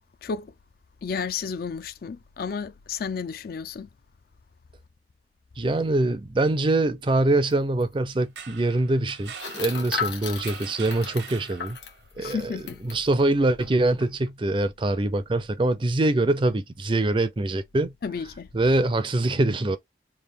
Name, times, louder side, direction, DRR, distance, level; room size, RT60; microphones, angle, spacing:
voice 1, 0.2-0.5 1.0-3.9 12.2-12.8 18.0-18.5, left 5 dB, 55° left, 0.4 m, -32 dB
voice 2, 5.6-11.8 12.2-17.9 18.5-19.8, right 2 dB, 30° right, 0.4 m, -24 dB
sound 1, 7.5-7.6 7.8-7.9 9.3-13.0 13.6-13.7 14.0-14.3, left 6 dB, 75° left, 1.2 m, -35 dB
sound 2, 8.2-12.1, right 7 dB, 70° right, 0.7 m, -43 dB
3.4 x 2.5 x 3.5 m
head